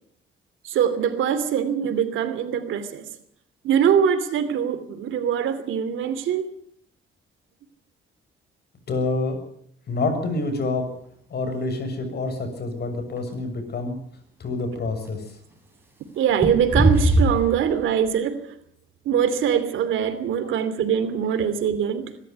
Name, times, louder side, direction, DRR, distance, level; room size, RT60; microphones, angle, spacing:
voice 1, 0.6-3.0 3.6-6.4 16.2-18.4 19.0-22.1, right 8 dB, 80° right, 2.8 m, -23 dB
voice 2, 8.9-9.4 9.9-10.9 11.3-13.9 14.4-15.2, left 3 dB, 55° left, 6.9 m, -27 dB
sound 1, 10.9-11.0 13.2-13.3 15.0-15.1 16.3-18.1, right 1 dB, 10° right, 7.7 m, -20 dB
23.5 x 13.0 x 9.4 m
cardioid pair, 90°, 20 cm